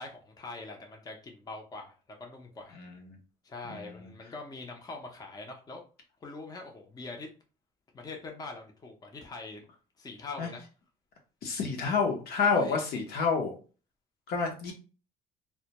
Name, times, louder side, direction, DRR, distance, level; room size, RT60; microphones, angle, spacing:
voice 1, 0.0-1.9 2.2-2.8 3.4-5.8 6.2-7.3 7.9-9.6 10.0-10.6 12.5-12.8, left 3 dB, 20° left, 2 dB, 0.6 m, -43 dB
voice 2, 2.8-3.1 3.7-4.1 10.4-10.5 11.4-13.6 14.3-14.7, left 5 dB, 65° left, 2 dB, 0.7 m, -29 dB
2.1 x 2.1 x 2.8 m, 0.35 s
cardioid pair, 110°, 17 cm